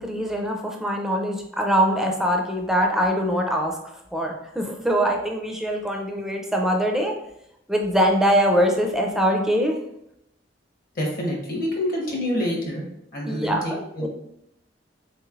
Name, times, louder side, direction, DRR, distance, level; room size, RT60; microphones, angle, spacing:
voice 1, 0.0-3.8 4.1-7.1 7.7-9.8 13.2-14.1, equal, ahead, 1 dB, 0.4 m, -23 dB
voice 2, 10.9-12.8 13.1-14.1, left 1 dB, 55° left, -1 dB, 1.0 m, -27 dB
3.5 x 3.1 x 2.4 m, 0.79 s
head